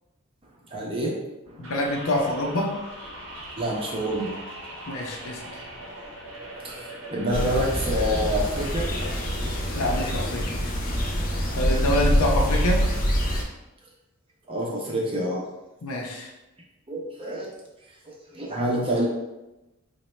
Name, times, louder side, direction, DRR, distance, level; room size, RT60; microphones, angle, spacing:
voice 1, 0.7-1.1 1.5-1.7 3.6-4.4 6.6-8.9 14.5-15.4 16.9-17.5 18.0-19.1, equal, 25° right, -3 dB, 0.6 m, -27 dB
voice 2, 1.6-2.7 4.9-5.4 9.7-10.6 11.6-12.8 15.8-16.3, left 1 dB, 85° left, 0 dB, 0.6 m, -26 dB
sound 1, 1.6-10.2, right 1 dB, 65° right, 0.7 m, -40 dB
sound 2, 7.3-13.4, equal, 40° left, 0.6 m, -25 dB
4.0 x 2.1 x 3.1 m, 1.0 s
head